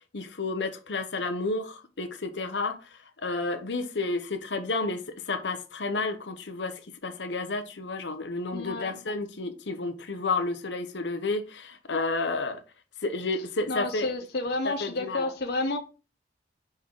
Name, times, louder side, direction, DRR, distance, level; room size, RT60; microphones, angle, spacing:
voice 1, 0.1-2.8 3.2-12.6 13.0-14.1 14.6-15.3, left 3 dB, 85° left, 1.0 m, -31 dB
voice 2, 8.5-8.9 13.7-15.8, left 2 dB, 65° left, 0.9 m, -30 dB
5.4 x 4.6 x 4.7 m
head